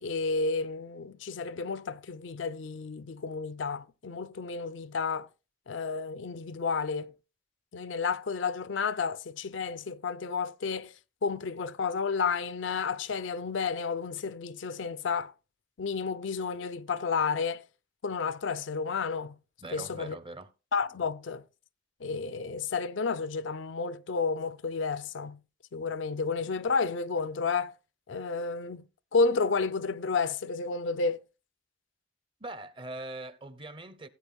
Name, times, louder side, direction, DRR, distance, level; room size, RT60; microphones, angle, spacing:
voice 1, 0.0-5.3 5.7-7.1 7.7-10.9 11.2-15.3 15.8-17.6 18.0-19.4 19.7-20.2 20.7-21.4 22.0-25.4 25.7-27.7 28.1-28.8 29.1-31.2, left 4 dB, 85° left, 0.5 m, -31 dB
voice 2, 19.6-20.5 32.4-34.1, right 2 dB, 25° right, 0.6 m, -42 dB
16.5 x 8.6 x 2.3 m
head